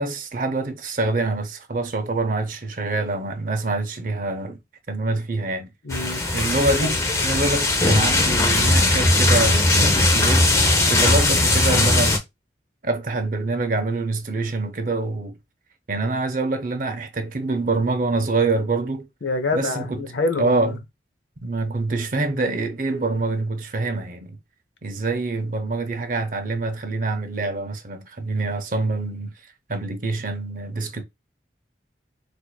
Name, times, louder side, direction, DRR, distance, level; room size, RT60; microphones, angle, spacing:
voice 1, 0.0-4.6 4.9-5.7 6.3-12.2 12.8-15.4 15.9-19.1 19.5-20.0 20.4-20.8 21.4-24.4 24.8-29.3 29.7-31.0, right 3 dB, 50° right, 0.6 m, -25 dB
voice 2, 5.8-6.2 6.7-7.0 19.2-20.8, left 3 dB, 80° left, 0.6 m, -26 dB
sound 1, 5.9-12.2, left 2 dB, 15° left, 0.5 m, -19 dB
4.5 x 2.5 x 2.2 m
head